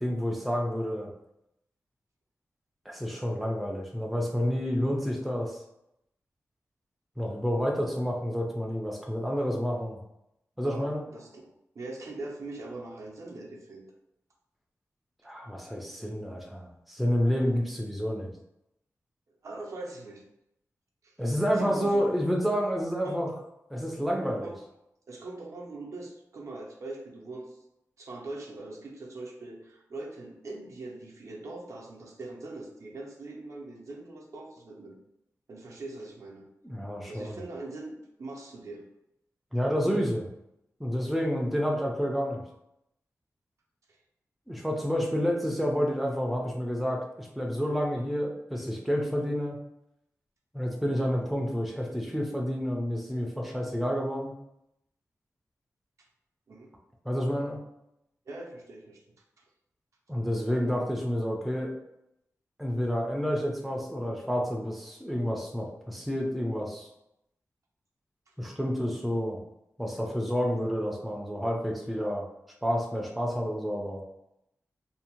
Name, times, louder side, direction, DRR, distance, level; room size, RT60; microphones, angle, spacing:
voice 1, 0.0-1.1 2.9-5.6 7.2-10.0 10.6-11.1 15.2-18.3 21.2-23.3 23.7-24.5 36.6-37.4 39.5-40.3 40.8-42.4 44.5-49.6 50.5-54.3 57.1-57.6 60.1-61.7 62.6-66.9 68.4-69.4 69.8-72.3 72.6-74.0, equal, ahead, 0 dB, 0.4 m, -29 dB
voice 2, 10.6-13.8 19.4-20.2 21.0-21.1 21.5-22.1 23.0-23.2 24.4-24.6 25.1-27.6 28.0-35.0 35.5-36.4 37.1-38.8 56.5-56.7 58.3-59.0, right 2 dB, 65° right, 0 dB, 0.5 m, -41 dB
2.6 x 2.0 x 2.8 m, 0.83 s
wide cardioid pair, 120°, 6 cm